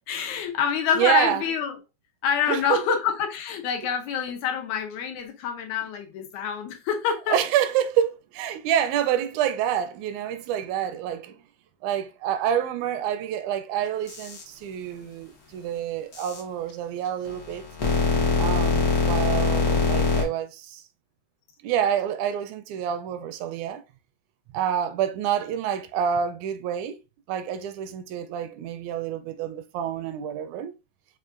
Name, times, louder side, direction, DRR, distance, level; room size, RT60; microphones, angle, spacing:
voice 1, 0.1-1.8 2.2-7.4, left 8 dB, 80° left, 2.0 m, -26 dB
voice 2, 1.0-1.4 2.5-2.8 7.3-11.3 11.8-17.6 18.4-20.8 21.6-23.8 24.5-27.0 27.3-30.7, right 9 dB, 85° right, 2.0 m, -27 dB
sound 1, 14.1-14.4 16.1-16.4 17.2-20.2, left 4 dB, 65° left, 0.9 m, -23 dB
5.4 x 2.4 x 2.4 m
omnidirectional pair, 3.4 m